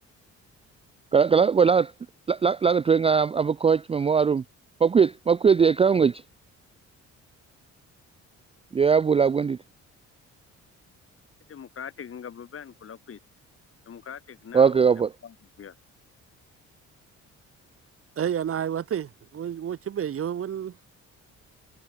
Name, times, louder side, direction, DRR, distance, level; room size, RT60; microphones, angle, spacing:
voice 1, 1.1-1.9 2.3-4.4 4.8-6.2 8.7-9.6 14.5-15.1, right 6 dB, 20° right, 0.4 m, -20 dB
voice 2, 11.5-13.2 13.9-14.9 15.2-15.7, left 7 dB, 45° left, 2.3 m, -42 dB
voice 3, 18.2-20.7, right 9 dB, 50° right, 1.0 m, -30 dB
cardioid pair, 90°, 30 cm